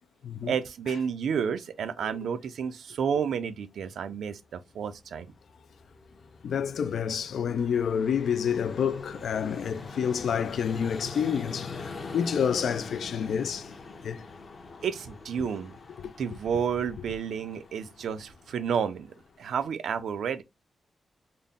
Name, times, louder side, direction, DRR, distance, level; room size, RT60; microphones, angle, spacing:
voice 1, 0.5-5.3 14.8-15.8 16.2-20.4, right 7 dB, 80° right, 0.5 m, -31 dB
Vehicle, 4.9-19.6, left 4 dB, 40° left, 0.7 m, -43 dB
voice 2, 6.4-13.7 14.0-14.2 15.4-15.5 16.0-16.1, left 7 dB, 70° left, 0.3 m, -29 dB
3.7 x 2.1 x 3.6 m
wide cardioid pair, 175°, 0 cm